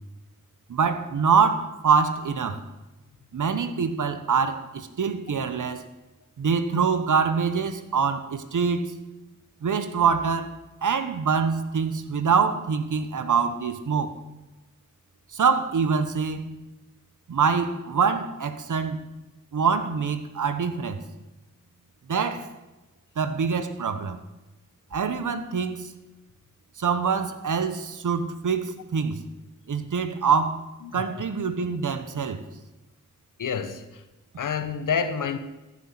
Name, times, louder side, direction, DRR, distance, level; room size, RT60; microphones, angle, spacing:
voice 1, 0.7-2.6 3.3-5.8 6.4-8.9 9.6-14.1 15.3-16.6 17.3-19.0 19.5-21.0 22.1-22.5 23.2-24.2 24.9-25.9 26.8-29.2 29.7-30.6 30.9-32.4, right 6 dB, 75° right, 11 dB, 1.2 m, -25 dB
voice 2, 30.8-31.2 33.4-34.0 34.4-35.4, left 6 dB, 85° left, 11 dB, 1.0 m, -28 dB
14.5 x 6.3 x 7.6 m, 1.1 s
cardioid pair, 45°, 31 cm